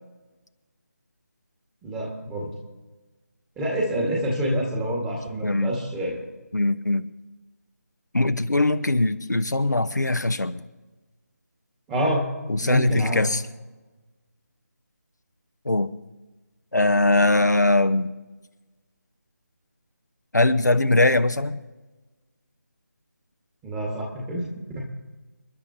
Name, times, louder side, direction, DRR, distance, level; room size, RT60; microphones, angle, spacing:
voice 1, 1.8-2.5 3.6-6.2 11.9-12.2 12.6-13.2 23.6-24.4 24.8-24.9, equal, 10° right, -2 dB, 1.9 m, -27 dB
voice 2, 5.4-5.8 6.5-7.0 8.1-10.6 12.5-13.4 15.6-15.9 16.7-18.2 20.3-21.6, left 2 dB, 85° left, 8 dB, 1.0 m, -21 dB
29.5 x 11.0 x 2.9 m, 1.2 s
figure-of-eight pair, 160°, 9 cm